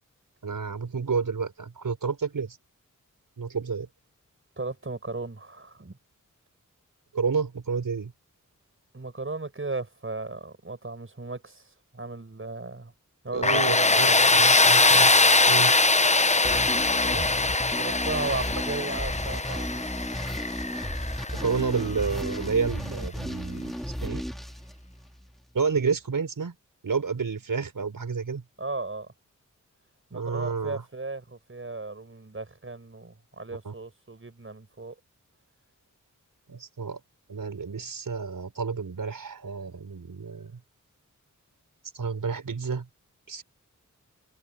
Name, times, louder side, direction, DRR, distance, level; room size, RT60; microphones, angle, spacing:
voice 1, 0.4-2.6 3.4-3.9 7.1-8.1 13.3-15.7 21.3-24.2 25.5-26.6 26.8-28.4 30.1-30.8 33.7-33.8 36.5-37.0 37.3-40.6 41.9-42.9 43.3-43.4, right 5 dB, 85° right, 5.3 m, -30 dB
voice 2, 4.6-6.0 8.9-12.9 13.2-14.4 17.0-19.9 21.4-21.6 28.6-29.1 30.1-35.0, right 3 dB, 40° right, 6.0 m, -36 dB
Tools, 13.4-22.2, left 3 dB, 20° left, 0.8 m, -22 dB
sound 1, 16.4-25.3, equal, ahead, 2.6 m, -34 dB
wide cardioid pair, 65°, 32 cm